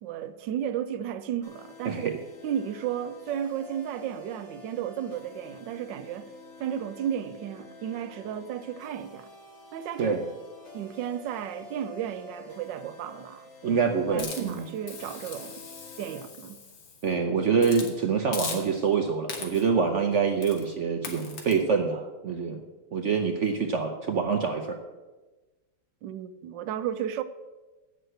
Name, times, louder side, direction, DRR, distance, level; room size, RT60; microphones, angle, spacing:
voice 1, 0.0-2.2 2.4-6.3 6.6-9.3 9.7-10.2 10.7-13.8 14.1-15.6 16.0-16.6 26.0-27.2, right 9 dB, 80° right, 1.3 m, -33 dB
sound 1, 1.4-16.3, left 3 dB, 60° left, 2.7 m, -49 dB
voice 2, 13.6-14.7 17.0-22.6 22.9-24.8, right 5 dB, 60° right, 0.7 m, -26 dB
Hiss, 14.2-17.1 17.6-17.9 18.3-18.9 19.3-19.8 20.4-20.7 21.0-21.5, left 5 dB, 85° left, 2.1 m, -39 dB
8.0 x 6.7 x 7.8 m
omnidirectional pair, 2.0 m